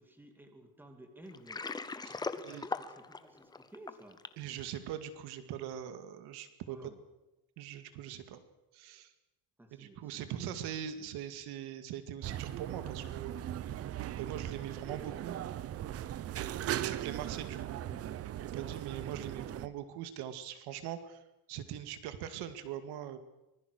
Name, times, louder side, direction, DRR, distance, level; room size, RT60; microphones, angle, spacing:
voice 1, 0.0-1.6 2.2-4.2 6.7-7.0 9.6-11.1 17.6-18.1, right 1 dB, 5° right, 5 dB, 2.4 m, -55 dB
Water, 1.3-4.5, left 4 dB, 10° left, 0.7 m, -39 dB
voice 2, 2.0-2.7 4.4-6.9 7.6-8.4 8.7-9.1 9.7-13.4 14.2-15.4 16.8-17.8 18.5-21.2 21.5-23.2, right 10 dB, 70° right, 10 dB, 2.2 m, -42 dB
sound 1, 12.2-19.7, right 12 dB, 35° right, 0.8 m, -39 dB
24.5 x 20.5 x 6.6 m, 0.95 s
cardioid pair, 170°, 40 cm